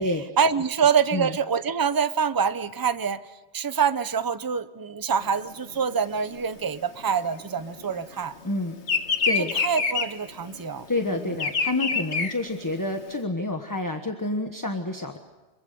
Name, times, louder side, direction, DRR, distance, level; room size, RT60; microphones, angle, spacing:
voice 1, 0.4-3.2 3.5-8.3 9.6-11.2, right 6 dB, 20° right, 12 dB, 0.7 m, -25 dB
Bird vocalization bird call bird song, 5.2-8.1 8.4-13.1, left 4 dB, 75° left, 1.8 m, -27 dB
voice 2, 8.4-8.8 9.2-9.5 10.6-15.2, left 2 dB, 15° left, 5 dB, 1.3 m, -28 dB
26.0 x 24.0 x 6.8 m, 1.2 s
omnidirectional pair, 1.2 m